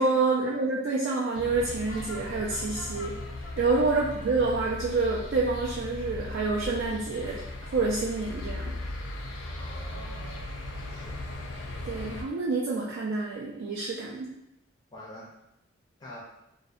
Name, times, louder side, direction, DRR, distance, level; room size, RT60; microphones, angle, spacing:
voice 1, 0.0-3.2 3.6-8.8 11.8-14.3, right 3 dB, 75° right, -3 dB, 0.3 m, -28 dB
sound 1, 1.3-12.2, left 2 dB, 85° left, 0.4 m, -38 dB
voice 2, 9.4-11.2 14.9-15.3 16.0-16.2, left 1 dB, 20° left, -5 dB, 0.4 m, -47 dB
2.5 x 2.1 x 2.4 m, 0.85 s
head